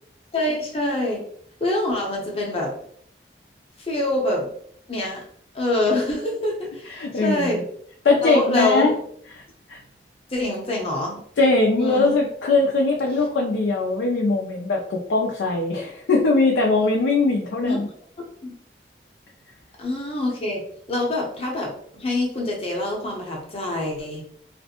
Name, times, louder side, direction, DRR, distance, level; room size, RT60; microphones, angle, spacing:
voice 1, 0.3-1.2 1.6-2.7 3.8-4.5 4.9-5.2 5.5-7.7 8.2-8.9 10.3-11.2 11.8-12.1 17.6-17.8 18.4-18.5 19.8-20.6 20.9-24.2, left 1 dB, 35° left, -2 dB, 0.7 m, -25 dB
voice 2, 6.9-7.6 8.0-9.0 9.7-9.8 11.4-17.9, left 3 dB, 90° left, -1 dB, 0.4 m, -21 dB
2.5 x 2.1 x 2.8 m, 0.62 s
head